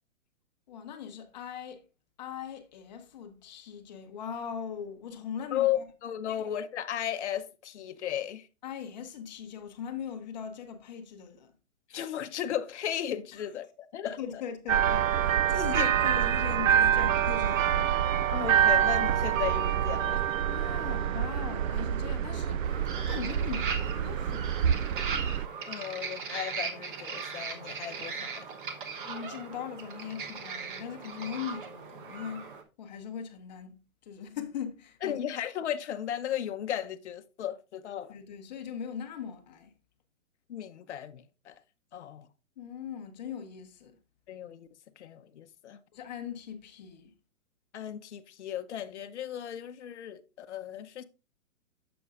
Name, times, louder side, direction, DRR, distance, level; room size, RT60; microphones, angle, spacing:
voice 1, 0.7-1.8 2.2-5.8 6.3-6.4 8.6-11.5 13.3-13.4 14.0-17.9 20.5-22.6 22.9-24.9 29.0-32.5 32.8-33.7 34.1-35.2 38.1-39.7 42.6-44.0 45.9-47.1, left 7 dB, 30° left, 1.0 m, -40 dB
voice 2, 5.5-8.5 11.9-14.4 15.7-15.9 18.3-20.2 25.7-28.4 35.0-38.1 40.5-41.5 41.9-42.3 44.3-44.7 45.0-45.8 47.7-51.0, left 10 dB, 55° left, 0.8 m, -35 dB
sound 1, 14.7-25.5, right 9 dB, 65° right, 0.5 m, -26 dB
sound 2, 22.6-32.6, right 5 dB, 40° right, 1.0 m, -38 dB
9.1 x 6.9 x 2.4 m
hypercardioid pair, 160°, 42 cm